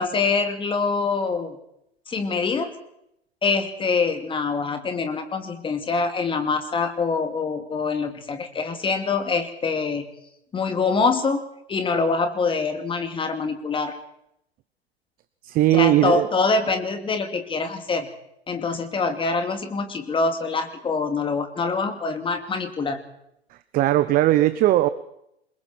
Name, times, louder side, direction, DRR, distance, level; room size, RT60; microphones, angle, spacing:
voice 1, 0.0-1.6 2.1-2.7 3.4-10.0 10.5-11.4 11.7-13.9 15.7-18.1 18.5-23.0, left 4 dB, 15° left, 7 dB, 2.7 m, -24 dB
voice 2, 15.4-16.3 23.7-24.9, right 14 dB, 25° right, 14 dB, 1.0 m, -18 dB
27.5 x 22.0 x 4.5 m, 0.78 s
figure-of-eight pair, 105°, 32 cm